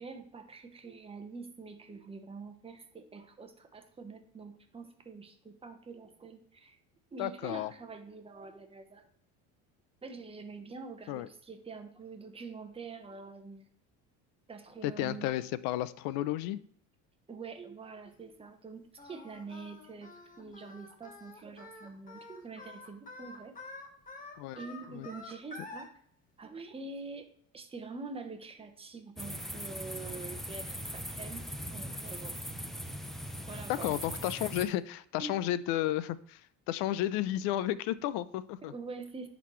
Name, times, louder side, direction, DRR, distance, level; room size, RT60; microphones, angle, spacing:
voice 1, 0.0-6.8 7.1-9.1 10.0-13.7 14.5-15.4 17.3-23.6 24.5-25.9 26.4-27.3 27.5-32.4 33.5-33.9 35.2-35.4 38.6-39.3, right 4 dB, 15° right, 6 dB, 0.9 m, -45 dB
voice 2, 7.2-7.7 11.1-11.3 14.8-16.6 24.4-24.6 24.9-25.1 33.7-36.4 36.7-38.7, left 13 dB, 80° left, 16 dB, 0.5 m, -32 dB
Singing, 19.0-25.9, left 2 dB, 25° left, 1.3 m, -48 dB
sound 1, 29.2-34.7, equal, ahead, 0.5 m, -40 dB
10.0 x 4.1 x 3.1 m, 0.62 s
cardioid pair, 120°, 33 cm